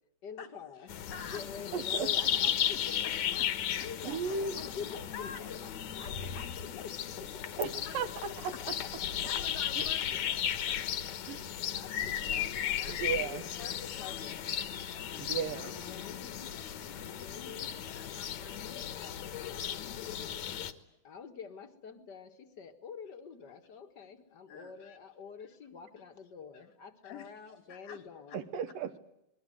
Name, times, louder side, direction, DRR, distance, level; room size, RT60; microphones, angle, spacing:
voice 1, 0.2-0.9 1.2-3.1 3.8-5.7 6.0-7.8 9.0-9.1 10.1-10.4 11.7-14.4 15.4-16.6 16.9-17.7 18.2-18.8 19.4-19.5 21.0-28.5, left 6 dB, 45° left, 6 dB, 1.4 m, -47 dB
voice 2, 0.8-1.4 1.7-2.0 2.4-2.5 5.1-5.4 7.9-8.0 9.1-11.0 12.5-17.1 17.8-20.7 24.5-25.0 25.4-25.5 27.0-28.0 28.3-28.4, left 6 dB, 85° left, 7 dB, 4.6 m, -51 dB
sound 1, 0.9-20.7, left 10 dB, 60° left, 2.3 m, -35 dB
voice 3, 1.7-2.1 4.0-4.6 7.6-8.5 9.8-9.9 11.3-11.5 12.9-13.4 15.2-15.7 28.3-29.0, right 6 dB, 75° right, 9 dB, 2.9 m, -35 dB
28.0 x 22.0 x 7.8 m, 0.84 s
omnidirectional pair, 4.1 m